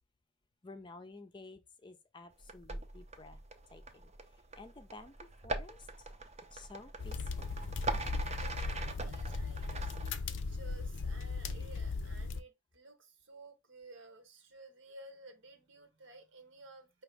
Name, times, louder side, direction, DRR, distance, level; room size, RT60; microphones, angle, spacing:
voice 1, 0.6-3.4 3.7-4.1 4.6-6.1 6.5-7.5, left 3 dB, 25° left, 0.5 m, -52 dB
sound 1, 2.4-10.2, right 2 dB, 35° right, 0.6 m, -41 dB
sound 2, 7.0-12.4, left 4 dB, 75° left, 0.5 m, -38 dB
voice 2, 8.3-17.0, right 2 dB, 75° right, 1.1 m, -55 dB
5.1 x 2.8 x 3.3 m
head